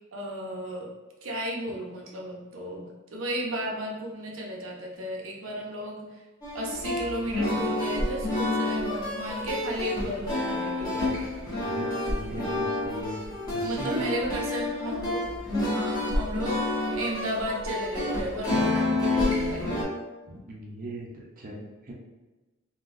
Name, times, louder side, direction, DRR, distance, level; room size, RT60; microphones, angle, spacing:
voice 1, 0.1-0.9 1.2-6.1 6.5-11.1 13.6-15.3 15.6-19.8, right 1 dB, 90° right, -1 dB, 0.7 m, -34 dB
sound 1, 6.4-19.8, left 2 dB, 20° left, 0.9 m, -29 dB
voice 2, 11.6-13.2 13.5-14.0 20.3-21.9, equal, 45° right, -3 dB, 0.6 m, -39 dB
3.8 x 2.2 x 2.5 m, 1.2 s
head